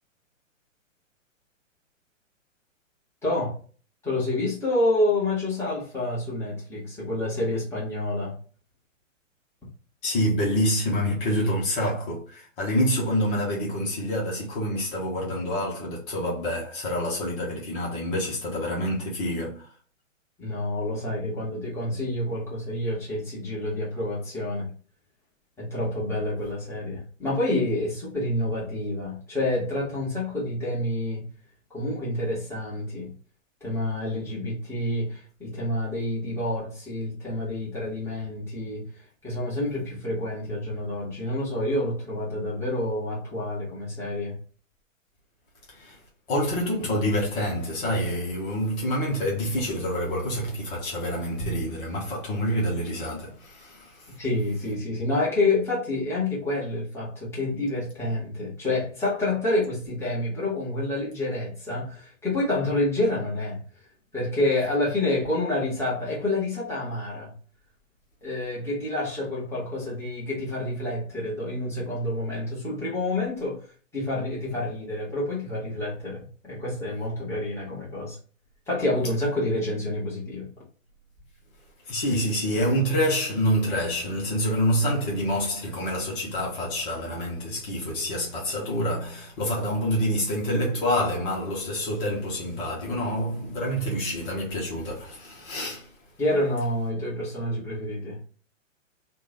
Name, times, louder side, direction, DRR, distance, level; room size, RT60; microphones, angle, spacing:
voice 1, 3.2-3.6 4.0-8.4 20.4-24.7 25.6-31.2 31.7-33.1 33.6-38.9 39.2-44.4 54.2-63.6 64.1-67.3 68.2-73.6 73.9-78.1 78.7-80.5 96.2-98.2, left 1 dB, 5° left, 1.7 m, -28 dB
voice 2, 10.0-19.7 45.7-46.0 46.3-54.1 81.9-95.9, equal, 40° left, 1.4 m, -27 dB
3.6 x 2.6 x 3.3 m
figure-of-eight pair, 115°, 39 cm